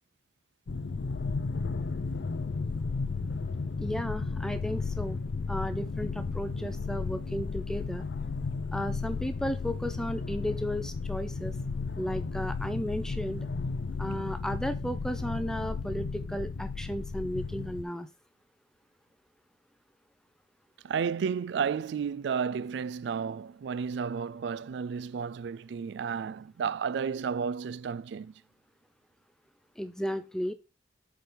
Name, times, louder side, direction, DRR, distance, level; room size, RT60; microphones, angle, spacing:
sound 1, 0.7-17.8, left 4 dB, 65° left, 0.5 m, -34 dB
voice 1, 3.8-5.2 5.5-8.1 8.7-11.6 12.0-13.5 14.0-18.1 29.8-30.5, equal, 5° left, 0.4 m, -34 dB
voice 2, 20.8-28.3, right 6 dB, 65° right, 0.3 m, -32 dB
7.8 x 4.5 x 3.3 m
head